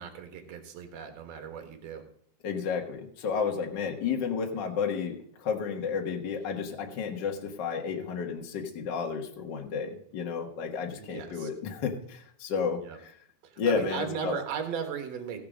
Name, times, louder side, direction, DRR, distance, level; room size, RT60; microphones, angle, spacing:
voice 1, 0.0-2.0 11.0-11.5 12.8-13.0 13.4-15.4, right 7 dB, 60° right, 5 dB, 2.5 m, -36 dB
voice 2, 2.4-13.1 13.6-14.4, left 6 dB, 45° left, 1 dB, 1.5 m, -32 dB
17.0 x 5.8 x 5.0 m, 0.64 s
omnidirectional pair, 3.9 m